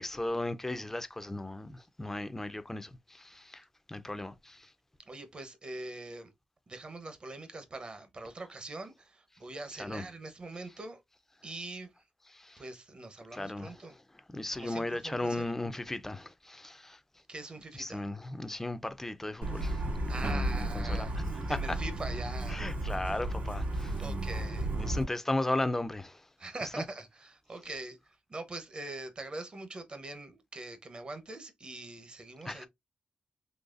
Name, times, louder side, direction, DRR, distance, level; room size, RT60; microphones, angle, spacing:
voice 1, 0.0-4.7 9.8-10.0 12.3-12.6 13.3-13.7 14.3-17.0 17.8-19.9 20.2-21.1 21.5-21.8 22.5-24.0 24.7-26.3 32.5-32.7, left 2 dB, 10° left, 0.4 m, -36 dB
voice 2, 5.0-6.3 6.7-11.0 11.4-12.1 12.6-13.9 14.5-15.5 17.3-18.1 20.1-21.2 21.5-22.6 24.0-24.7 26.4-32.7, right 2 dB, 35° right, 0.8 m, -43 dB
Truck, 19.4-25.0, right 1 dB, 65° right, 2.0 m, -33 dB
3.9 x 3.0 x 2.4 m
cardioid pair, 100°, 3 cm